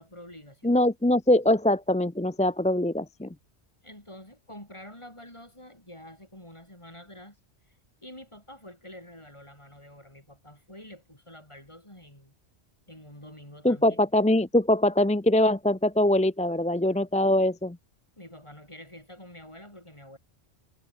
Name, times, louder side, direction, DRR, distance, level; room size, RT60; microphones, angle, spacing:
voice 1, 0.0-0.7 3.8-7.4 8.0-12.3 12.9-14.0 18.2-20.2, left 1 dB, 25° left, 6.4 m, -47 dB
voice 2, 0.6-3.3 13.6-17.8, left 1 dB, 10° left, 0.4 m, -23 dB
omnidirectional pair, 1.1 m